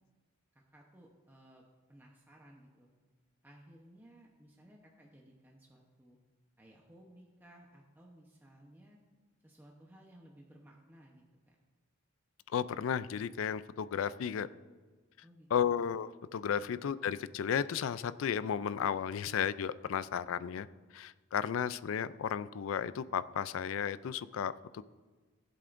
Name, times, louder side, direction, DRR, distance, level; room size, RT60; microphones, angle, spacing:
voice 1, 0.5-1.6 1.9-2.9 3.4-6.2 6.6-9.0 9.4-11.6 15.2-15.8 16.6-16.7, right 1 dB, 10° right, -1 dB, 0.8 m, -58 dB
voice 2, 12.5-14.5 15.5-20.7 20.9-24.8, left 8 dB, 70° left, 16 dB, 0.3 m, -34 dB
17.0 x 7.8 x 2.5 m, 1.3 s
head